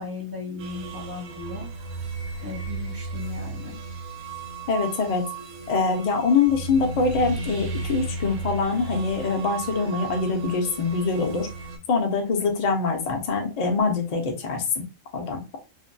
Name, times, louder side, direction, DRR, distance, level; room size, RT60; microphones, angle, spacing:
voice 1, 0.0-1.7 2.4-3.8, left 4 dB, 25° right, -2 dB, 0.5 m, -36 dB
sound 1, 0.6-11.8, right 3 dB, 85° right, 1.0 m, -35 dB
voice 2, 4.7-5.2 5.7-11.5 11.9-14.8 15.1-15.4, left 4 dB, 55° left, 3 dB, 0.4 m, -24 dB
2.6 x 2.2 x 2.5 m, 0.30 s
omnidirectional pair, 1.5 m